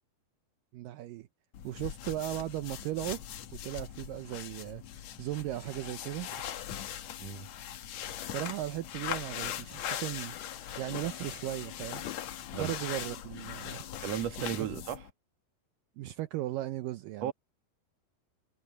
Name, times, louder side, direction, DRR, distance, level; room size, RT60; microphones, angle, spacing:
voice 1, 0.7-1.3 1.6-3.3 3.6-4.8 5.2-6.4 8.3-10.4 10.8-12.1 12.5-13.8 14.4-14.5 16.0-17.3, right 15 dB, 80° right, 2.0 m, -37 dB
sound 1, 1.5-15.1, left 10 dB, 80° left, 1.5 m, -40 dB
voice 2, 14.0-15.1 17.2-17.3, right 10 dB, 55° right, 2.1 m, -35 dB
omnidirectional pair, 4.8 m